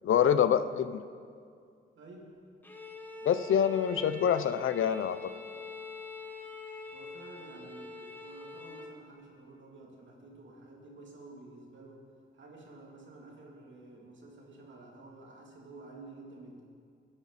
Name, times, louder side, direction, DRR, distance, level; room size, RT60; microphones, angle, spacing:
voice 1, 0.0-1.0 3.2-5.3, left 8 dB, 80° left, 13 dB, 0.6 m, -26 dB
voice 2, 1.9-2.4 6.9-12.0 12.3-16.6, right 2 dB, 65° right, -2 dB, 2.9 m, -51 dB
Bowed string instrument, 2.6-9.0, left 3 dB, 10° left, 1.0 m, -45 dB
24.5 x 9.6 x 4.2 m, 2.3 s
wide cardioid pair, 170°, 21 cm